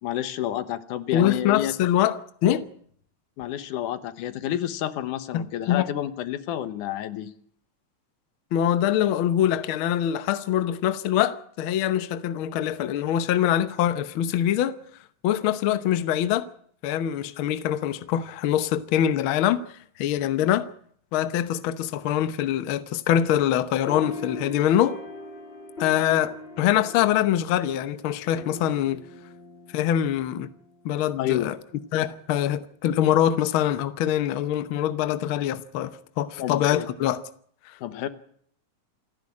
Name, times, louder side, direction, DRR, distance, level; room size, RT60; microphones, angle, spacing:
voice 1, 0.0-1.7 3.4-7.3 31.2-31.5 36.4-36.9 37.8-38.1, left 12 dB, 90° left, 2.6 m, -29 dB
voice 2, 1.1-2.6 5.3-5.9 8.5-14.8 15.2-16.5 16.8-19.6 20.0-20.7 21.1-25.0 25.8-29.0 29.7-30.5 30.8-31.6 31.9-37.2 37.7-37.8, left 11 dB, 65° left, 1.3 m, -24 dB
sound 1, 23.9-30.7, left 2 dB, 20° left, 2.4 m, -41 dB
28.0 x 10.5 x 8.6 m
omnidirectional pair, 3.5 m